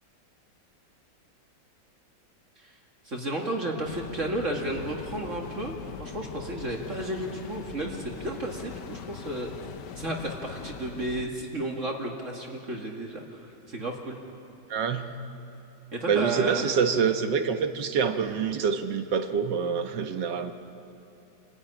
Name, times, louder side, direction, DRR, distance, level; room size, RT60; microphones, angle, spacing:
voice 1, 3.0-9.5 10.0-14.2 15.9-16.7, right 1 dB, 45° right, 0 dB, 2.3 m, -33 dB
sound 1, 3.8-11.3, left 8 dB, 75° left, 1.4 m, -41 dB
voice 2, 14.7-15.1 16.1-20.5, right 6 dB, 75° right, 7 dB, 1.7 m, -26 dB
27.5 x 16.0 x 9.9 m, 2.7 s
omnidirectional pair, 1.9 m